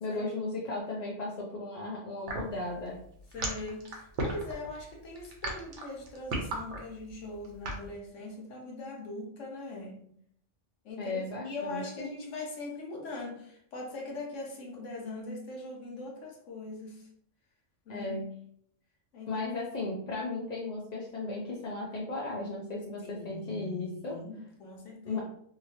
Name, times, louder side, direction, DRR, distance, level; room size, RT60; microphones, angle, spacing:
voice 1, 0.0-3.0 11.0-12.1 17.9-18.3 19.3-24.2 25.1-25.2, left 2 dB, 50° left, -4 dB, 0.5 m, -35 dB
sound 1, 2.3-7.9, right 2 dB, 70° right, 1.1 m, -35 dB
voice 2, 3.3-10.0 10.8-17.1 17.9-18.2 19.1-19.4 23.0-25.2, left 2 dB, 80° left, 0 dB, 1.1 m, -41 dB
2.9 x 2.7 x 2.8 m, 0.68 s
omnidirectional pair, 1.3 m